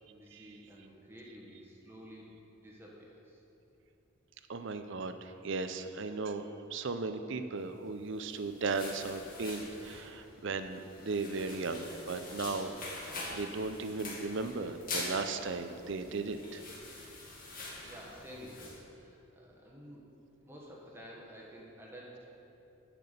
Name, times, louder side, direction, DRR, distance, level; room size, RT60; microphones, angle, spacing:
voice 1, 0.1-3.4 17.8-20.1 20.4-22.3, equal, 10° right, -4 dB, 1.2 m, -51 dB
voice 2, 4.5-12.7 13.3-16.6, right 3 dB, 55° right, 9 dB, 0.5 m, -36 dB
sound 1, 8.0-18.8, left 2 dB, 40° left, 2.1 m, -44 dB
10.5 x 6.0 x 6.7 m, 2.9 s
head